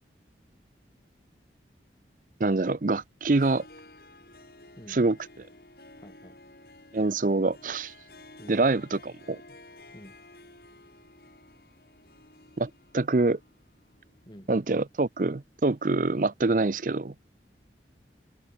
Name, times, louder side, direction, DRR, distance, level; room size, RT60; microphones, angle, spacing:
voice 1, 2.4-3.7 4.9-5.2 6.9-7.9 8.5-9.4 12.6-13.4 14.5-17.1, right 3 dB, 50° right, 0.6 m, -25 dB
Harp, 3.3-15.2, left 2 dB, 55° left, 7.4 m, -53 dB
voice 2, 6.0-6.4 8.4-8.6 9.9-10.2 14.3-14.5, equal, 25° left, 5.6 m, -48 dB
open air
head